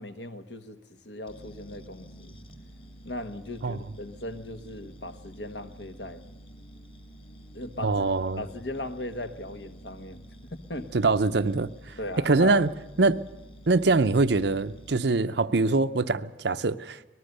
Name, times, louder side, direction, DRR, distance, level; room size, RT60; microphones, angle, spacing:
voice 1, 0.0-2.3 3.0-6.2 7.5-8.0 8.4-10.2 10.5-10.9 12.0-12.6, left 1 dB, 65° left, 1.4 m, -38 dB
sound 1, 1.3-15.0, right 1 dB, 30° left, 2.0 m, -49 dB
voice 2, 7.8-8.4 10.9-11.7 12.3-12.7 13.0-13.2 13.7-17.1, right 3 dB, 60° right, 0.7 m, -23 dB
25.0 x 19.5 x 6.8 m
head